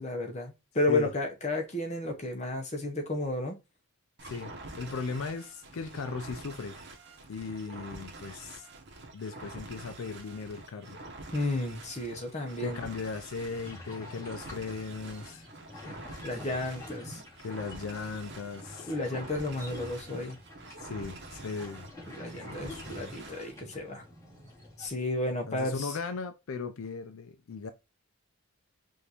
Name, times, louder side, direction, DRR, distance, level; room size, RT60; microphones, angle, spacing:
voice 1, 0.0-3.6 11.3-12.8 15.9-16.0 16.2-17.2 18.9-20.4 22.1-24.0 24.8-26.0, left 2 dB, 30° left, 0.8 m, -32 dB
sound 1, 4.2-23.6, right 2 dB, 50° right, 0.9 m, -47 dB
voice 2, 4.8-6.8 7.3-8.7 9.1-11.0 12.6-15.5 15.8-15.9 17.4-18.9 20.8-21.9 22.5-22.8 25.5-27.7, left 4 dB, 70° left, 0.4 m, -37 dB
sound 2, 13.5-24.9, left 1 dB, 15° left, 2.1 m, -48 dB
5.1 x 2.6 x 2.9 m
head